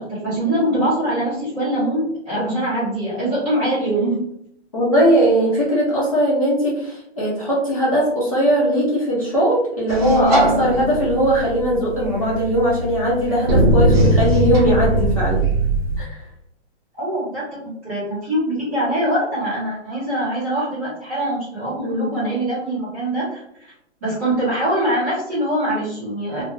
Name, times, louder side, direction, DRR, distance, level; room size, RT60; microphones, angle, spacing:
voice 1, 0.0-4.2 17.0-17.4 17.9-23.7 24.0-26.4, right 1 dB, 15° right, -13 dB, 0.7 m, -23 dB
voice 2, 4.7-15.4 16.0-16.2 21.8-22.1, equal, 30° left, -7 dB, 0.6 m, -19 dB
sound 1, 9.9-16.0, right 1 dB, 60° right, 0.6 m, -20 dB
2.2 x 2.0 x 3.1 m, 0.74 s
hypercardioid pair, 175°, 35 cm